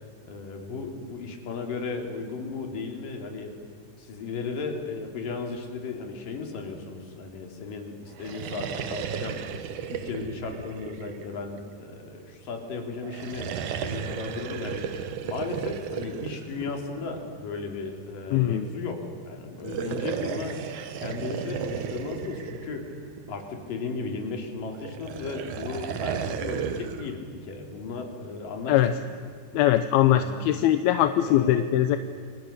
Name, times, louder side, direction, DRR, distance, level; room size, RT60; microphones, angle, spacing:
voice 1, 0.3-3.6 4.0-9.4 9.9-20.6 21.0-22.9 23.3-29.1 30.1-30.4 31.2-31.7, left 4 dB, 65° left, 3 dB, 4.6 m, -35 dB
sound 1, 8.1-11.7 13.0-17.4 19.5-23.5 24.8-27.1, right 8 dB, 65° right, 2.5 m, -34 dB
voice 2, 18.3-18.7 28.7-28.9 29.5-32.0, left 12 dB, 85° left, 10 dB, 2.7 m, -21 dB
29.5 x 24.0 x 6.7 m, 2.3 s
omnidirectional pair, 4.3 m